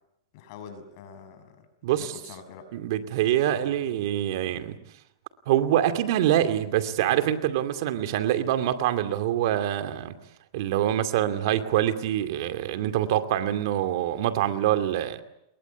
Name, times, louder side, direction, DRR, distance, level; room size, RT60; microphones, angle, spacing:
voice 1, 0.3-1.7 1.9-2.7, left 6 dB, 50° left, 6.6 m, -45 dB
voice 2, 1.8-2.1 2.7-4.8 5.5-10.2 10.5-15.2, right 12 dB, 60° right, 2.5 m, -25 dB
28.5 x 22.0 x 8.2 m
supercardioid pair, 145°, 2 cm